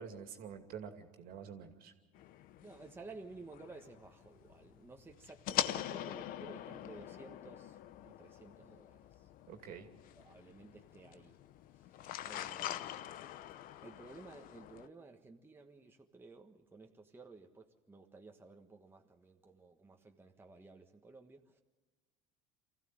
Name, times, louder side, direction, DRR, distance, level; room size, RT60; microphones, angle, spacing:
voice 1, 0.0-1.9 9.5-9.9, right 7 dB, 60° right, 2.5 m, -47 dB
sound 1, 2.1-14.9, left 12 dB, 55° left, 0.8 m, -44 dB
voice 2, 2.6-9.3 10.1-11.4 11.7-13.1 13.8-21.6, right 3 dB, 15° right, 1.4 m, -55 dB
24.5 x 15.0 x 7.8 m
hypercardioid pair, 85°, 17 cm